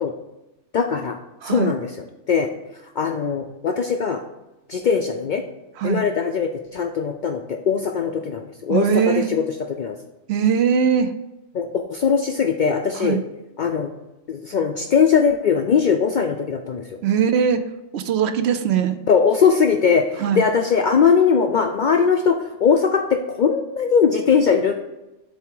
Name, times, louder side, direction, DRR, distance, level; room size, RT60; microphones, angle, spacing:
voice 1, 0.7-1.2 1.4-2.5 3.0-4.2 4.7-5.4 5.8-9.4 9.7-10.0 11.5-13.2 13.6-13.9 14.3-16.9 19.1-24.7, left 6 dB, 60° left, 4 dB, 0.5 m, -20 dB
voice 2, 1.4-1.7 5.8-6.0 8.7-9.3 10.3-11.1 12.9-13.2 17.0-17.6 17.9-19.0 20.2-20.5, right 7 dB, 70° right, 9 dB, 0.8 m, -20 dB
7.3 x 3.4 x 4.8 m, 0.95 s
omnidirectional pair, 1.2 m